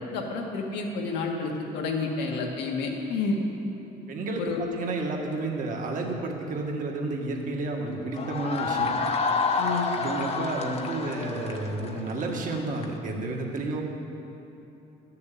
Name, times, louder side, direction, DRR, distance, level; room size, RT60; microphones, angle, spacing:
voice 1, 0.0-3.4 4.4-4.7 9.6-9.9, left 4 dB, 90° left, 0 dB, 1.8 m, -30 dB
voice 2, 4.1-9.0 9.9-13.8, right 2 dB, 50° right, 1 dB, 1.9 m, -31 dB
sound 1, 8.1-12.9, left 4 dB, 35° left, 1.0 m, -29 dB
12.5 x 6.8 x 8.5 m, 2.9 s
cardioid pair, 110°, 17 cm